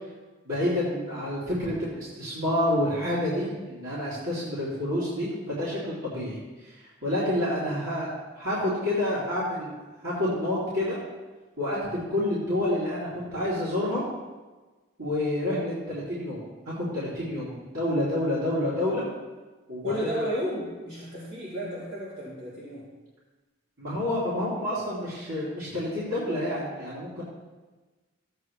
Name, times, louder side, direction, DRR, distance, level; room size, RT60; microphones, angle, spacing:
voice 1, 0.4-9.7 10.0-11.0 11.6-14.0 15.0-19.1 19.7-20.2 23.8-27.2, left 1 dB, 75° right, -10 dB, 3.1 m, -29 dB
voice 2, 19.8-22.8, equal, 50° right, -9 dB, 3.9 m, -32 dB
14.5 x 8.5 x 3.2 m, 1.3 s
head